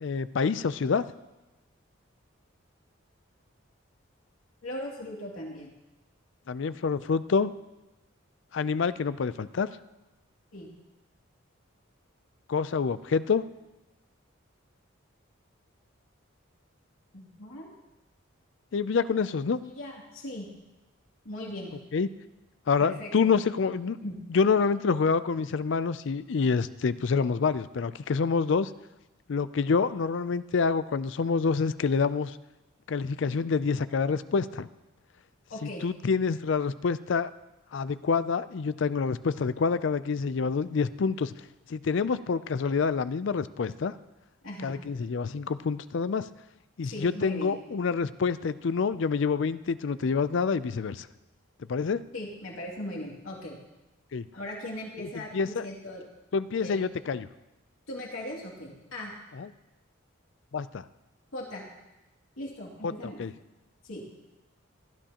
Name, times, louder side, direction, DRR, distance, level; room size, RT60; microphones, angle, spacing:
voice 1, 0.0-1.0 6.5-7.5 8.5-9.7 12.5-13.4 18.7-19.6 21.9-22.1 22.7-24.0 24.3-28.7 29.3-32.3 32.9-34.7 35.8-37.3 37.7-41.3 41.7-43.9 44.6-46.2 46.8-51.1 51.7-52.0 54.1-54.2 55.0-55.6 56.3-57.3 59.4-59.5 60.5-60.8 63.0-63.3, left 5 dB, 60° left, 15 dB, 0.4 m, -27 dB
voice 2, 4.6-5.7 10.5-10.7 17.1-17.7 19.6-20.5 21.2-21.7 22.8-23.3 24.0-24.2 35.5-35.8 44.4-44.7 46.8-47.5 52.1-53.6 54.3-56.0 56.6-56.8 57.9-59.1 61.3-61.6 62.4-63.2 63.8-64.0, left 1 dB, 85° left, -3 dB, 2.6 m, -39 dB
16.5 x 12.5 x 2.9 m, 1.0 s
head